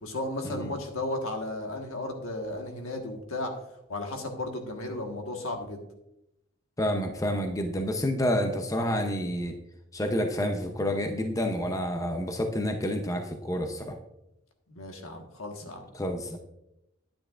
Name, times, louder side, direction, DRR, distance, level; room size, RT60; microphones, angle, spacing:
voice 1, 0.0-3.5 3.9-5.8 14.7-15.8, left 2 dB, 85° left, 3 dB, 1.4 m, -34 dB
voice 2, 6.8-9.5 9.9-14.0 15.9-16.4, equal, 15° left, 5 dB, 0.6 m, -29 dB
10.5 x 9.1 x 2.5 m, 0.87 s
head